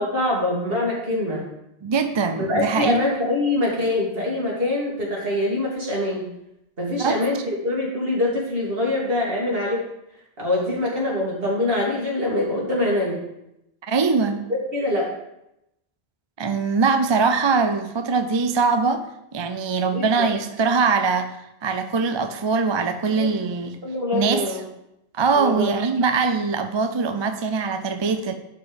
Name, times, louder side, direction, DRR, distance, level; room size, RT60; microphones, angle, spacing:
voice 1, 0.0-1.5 2.4-6.2 6.8-9.8 10.4-13.2 14.5-15.1 19.9-20.1 23.2-23.3 23.8-24.6 25.3-25.7, left 2 dB, 65° right, -4 dB, 2.7 m, -24 dB
voice 2, 1.8-3.0 7.0-7.2 13.9-14.4 16.4-19.0 19.3-21.4 21.6-23.8 24.1-24.5 25.1-28.3, right 4 dB, 35° right, 8 dB, 0.5 m, -22 dB
11.5 x 4.5 x 5.1 m, 0.84 s
omnidirectional pair, 1.0 m